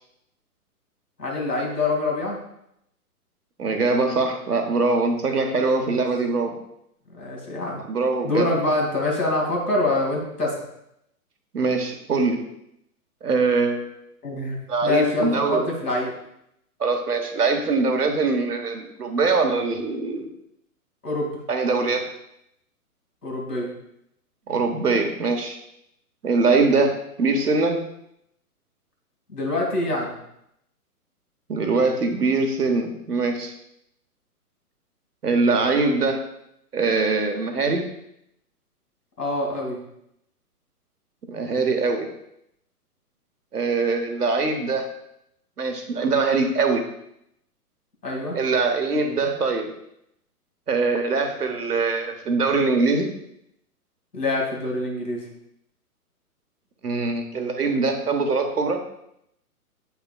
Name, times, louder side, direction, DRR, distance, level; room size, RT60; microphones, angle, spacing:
voice 1, 1.2-2.4 5.9-6.0 7.1-7.8 8.2-10.5 14.2-16.1 21.0-21.3 23.2-23.7 29.3-30.2 39.2-39.8 48.0-48.4 54.1-55.2, left 2 dB, 90° left, -1 dB, 2.4 m, -25 dB
voice 2, 3.6-6.6 7.9-8.5 11.5-12.4 13.2-13.9 14.7-15.7 16.8-20.3 21.5-22.1 24.5-25.6 26.2-27.8 31.5-33.5 35.2-36.2 36.7-37.9 41.3-42.1 43.5-44.9 45.6-46.8 48.3-49.7 50.7-53.1 56.8-58.8, right 3 dB, 80° right, 5 dB, 1.2 m, -22 dB
8.4 x 5.8 x 2.3 m, 0.77 s
figure-of-eight pair, 125°, 45 cm